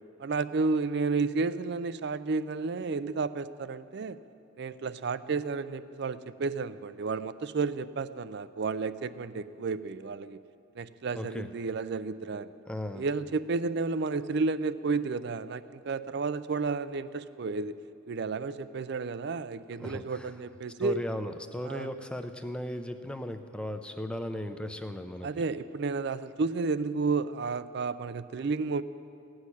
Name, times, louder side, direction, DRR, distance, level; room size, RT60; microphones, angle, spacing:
voice 1, 0.2-4.2 4.6-10.4 10.8-12.5 12.9-17.8 18.1-21.0 21.6-21.9 25.2-28.8, right 4 dB, 55° right, 15 dB, 0.4 m, -32 dB
voice 2, 11.2-11.5 12.7-13.1 19.8-20.3 20.8-25.3, left 1 dB, 5° left, 8 dB, 0.5 m, -36 dB
16.5 x 6.4 x 9.8 m, 2.6 s
head